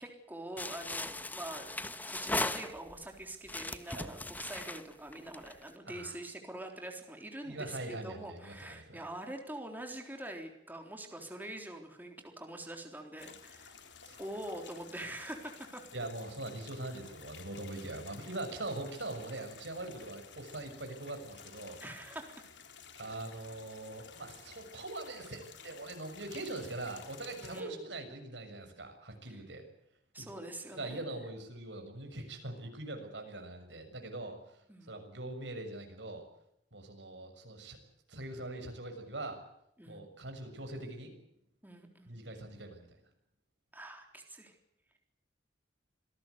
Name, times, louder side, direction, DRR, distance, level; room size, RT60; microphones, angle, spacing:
voice 1, 0.0-1.7 2.1-13.8 14.2-15.8 21.8-22.2 27.4-27.8 29.3-29.4 30.1-31.0 34.7-34.9 39.8-40.0 41.6-42.1 43.7-44.5, right 1 dB, 10° right, 3 dB, 3.8 m, -44 dB
sound 1, 0.6-3.1 3.5-5.7, left 2 dB, 10° left, 1.2 m, -38 dB
voice 2, 5.9-6.2 7.4-9.0 14.0-14.2 15.9-21.8 22.9-29.6 30.2-30.4 30.7-36.2 36.7-37.8 38.1-39.4 39.9-41.1 42.1-43.0, right 2 dB, 85° right, 5 dB, 6.6 m, -42 dB
sound 2, 13.2-27.6, left 6 dB, 90° left, 3.7 m, -53 dB
27.0 x 18.5 x 8.2 m, 0.80 s
head